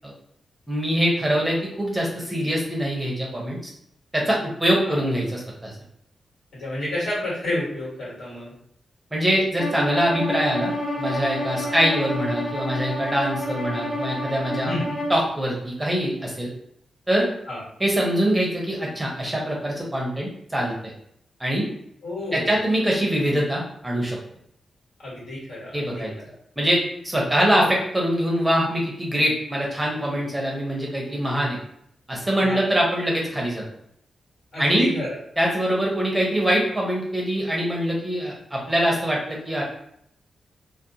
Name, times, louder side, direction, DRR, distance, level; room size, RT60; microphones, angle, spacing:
voice 1, 0.7-3.7 4.1-5.7 9.1-10.7 11.0-14.7 15.1-16.5 17.1-17.3 17.8-20.9 21.4-21.7 22.3-24.2 25.7-26.1 26.6-31.6 32.1-33.6 34.6-34.9 35.4-39.6, equal, 10° right, -2 dB, 0.6 m, -23 dB
voice 2, 6.5-8.5 11.6-11.8 14.6-15.0 17.5-17.6 22.0-22.6 25.0-26.0 32.4-32.6 34.5-35.2, left 1 dB, 70° left, -6 dB, 1.4 m, -30 dB
Bowed string instrument, 9.6-15.2, left 1 dB, 40° left, 0.6 m, -29 dB
2.4 x 2.1 x 2.7 m, 0.71 s
wide cardioid pair, 100°, 0 cm